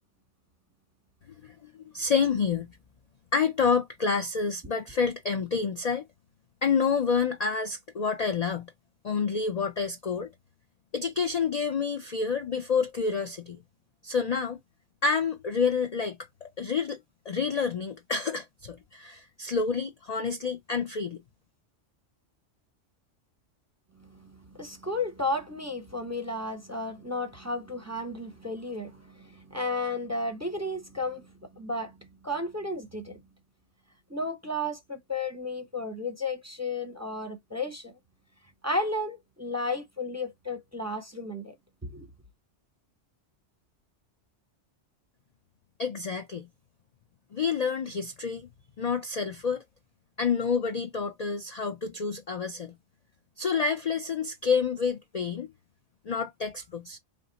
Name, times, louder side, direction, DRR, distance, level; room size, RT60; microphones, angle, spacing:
voice 1, 1.4-2.7 3.3-6.1 6.6-8.7 9.0-10.3 10.9-13.6 14.0-14.6 15.0-16.2 16.4-17.0 17.3-21.2 45.8-46.5 47.3-48.5 48.8-49.6 50.2-52.7 53.4-55.5 56.1-57.0, left 5 dB, 50° left, 0.4 m, -28 dB
voice 2, 24.5-31.2 31.6-31.9 32.2-33.2 34.1-37.9 38.6-41.5 41.8-42.1, left 2 dB, 15° right, 0.8 m, -33 dB
4.2 x 2.4 x 3.9 m
omnidirectional pair, 1.3 m